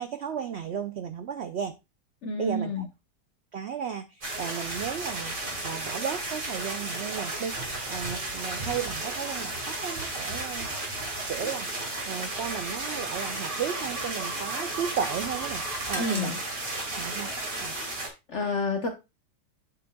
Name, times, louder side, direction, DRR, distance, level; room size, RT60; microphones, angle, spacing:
voice 1, 0.0-1.7 2.4-2.9 3.5-5.3 5.6-7.6 7.9-10.7 10.9-11.7 12.1-16.4 16.9-17.7, right 8 dB, 85° right, 10 dB, 0.5 m, -34 dB
voice 2, 2.2-2.9 15.9-16.4 18.3-18.9, left 2 dB, 50° left, 4 dB, 1.0 m, -29 dB
sound 1, 4.2-18.1, right 2 dB, 30° right, 1.9 m, -33 dB
8.7 x 7.0 x 2.2 m, 0.25 s
omnidirectional pair, 1.8 m